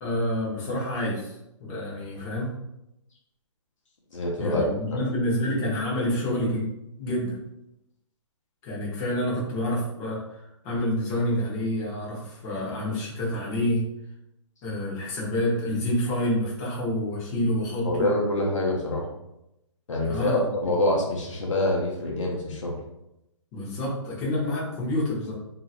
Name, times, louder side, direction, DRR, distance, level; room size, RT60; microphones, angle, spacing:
voice 1, 0.0-1.3 1.6-2.5 4.4-6.7 7.0-7.4 8.6-13.9 14.6-18.1 20.0-20.4 23.5-25.3, left 1 dB, 25° left, -6 dB, 1.0 m, -28 dB
voice 2, 4.1-4.7 17.8-19.1 19.9-22.7, left 1 dB, 75° left, -2 dB, 0.9 m, -25 dB
2.8 x 2.8 x 2.5 m, 0.86 s
hypercardioid pair, 140°, 16 cm